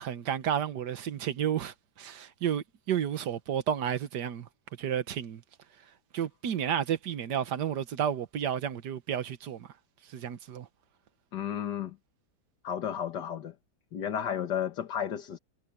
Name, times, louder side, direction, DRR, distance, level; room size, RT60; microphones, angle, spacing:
voice 1, 0.0-4.5 4.8-5.4 6.1-9.7 10.1-10.7, right 9 dB, 75° right, 1.7 m, -31 dB
voice 2, 11.3-11.9 12.6-13.5 13.9-15.4, left 9 dB, 80° left, 2.0 m, -32 dB
omnidirectional pair, 1.8 m